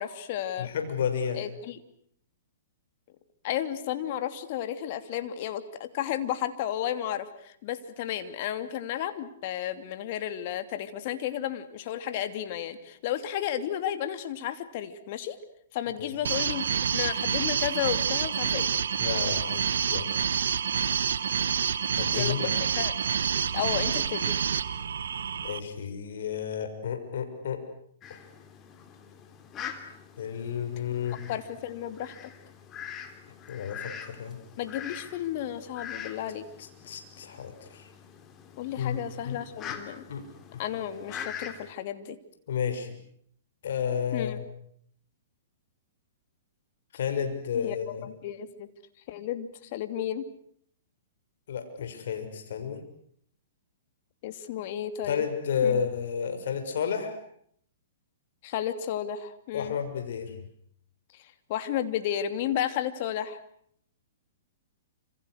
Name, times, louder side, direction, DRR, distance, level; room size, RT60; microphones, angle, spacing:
voice 1, 0.0-0.7 1.3-1.8 3.4-15.4 15.7-18.8 22.1-22.9 23.5-24.3 31.3-32.3 34.6-36.5 38.6-40.0 40.6-42.2 44.1-44.4 47.5-47.8 48.0-48.7 49.1-50.3 54.2-55.2 55.6-55.8 58.4-59.7 61.1-63.4, left 11 dB, 50° left, 10 dB, 2.9 m, -33 dB
voice 2, 0.6-1.4 16.0-16.1 19.0-19.6 19.9-20.1 22.0-22.5 25.4-27.6 28.1-28.2 30.2-31.2 33.5-34.4 36.8-37.9 38.8-39.0 39.2-39.4 39.7-39.8 40.1-40.3 40.5-40.6 42.5-42.9 43.6-44.5 46.9-48.1 51.5-52.8 55.0-57.2 59.5-60.4, left 7 dB, 70° left, 7 dB, 6.4 m, -31 dB
sound 1, 16.2-25.6, right 7 dB, 75° right, 1.5 m, -28 dB
Fowl, 28.0-41.7, left 8 dB, 25° left, 3.4 m, -44 dB
29.0 x 27.5 x 6.5 m, 0.65 s
hypercardioid pair, 130°, 0 cm